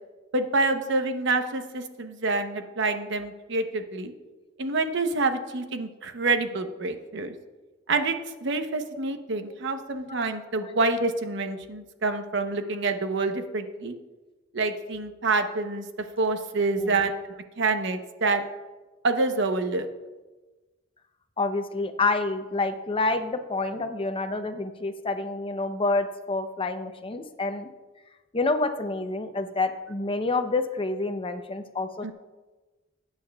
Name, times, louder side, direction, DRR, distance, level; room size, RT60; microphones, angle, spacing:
voice 1, 0.3-4.1 4.6-7.3 7.9-13.9 14.5-15.9 16.2-18.4 19.0-19.9 32.0-32.1, right 3 dB, 65° right, 7 dB, 0.9 m, -27 dB
voice 2, 21.4-27.7 28.3-32.1, left 3 dB, 30° left, 8 dB, 0.6 m, -28 dB
19.0 x 9.0 x 2.3 m, 1.2 s
head